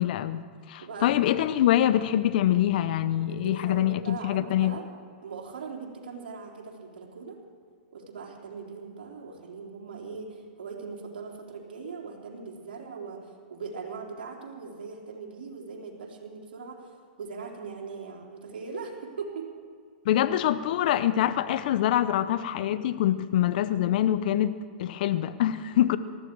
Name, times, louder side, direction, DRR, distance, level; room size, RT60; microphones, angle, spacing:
voice 1, 0.0-4.8 20.0-26.0, left 12 dB, 60° left, 13 dB, 0.7 m, -25 dB
voice 2, 0.8-1.1 3.3-4.8 5.2-7.4 7.9-16.8 17.2-19.5, right 5 dB, 70° right, -2 dB, 3.7 m, -40 dB
19.5 x 14.5 x 4.7 m, 2.1 s
hypercardioid pair, 120°, 5 cm